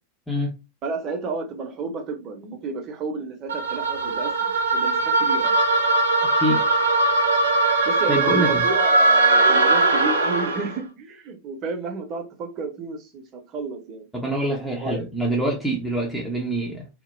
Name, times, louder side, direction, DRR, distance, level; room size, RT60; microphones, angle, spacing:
voice 1, 0.8-4.9 5.2-5.6 7.8-14.1 14.8-15.1, right 4 dB, 35° right, 0.7 m, -31 dB
sound 1, 3.5-10.7, right 2 dB, 70° right, 0.5 m, -20 dB
voice 2, 7.8-8.6 14.1-16.9, right 1 dB, ahead, 0.6 m, -25 dB
2.2 x 2.0 x 3.2 m
figure-of-eight pair, 90°, 0 cm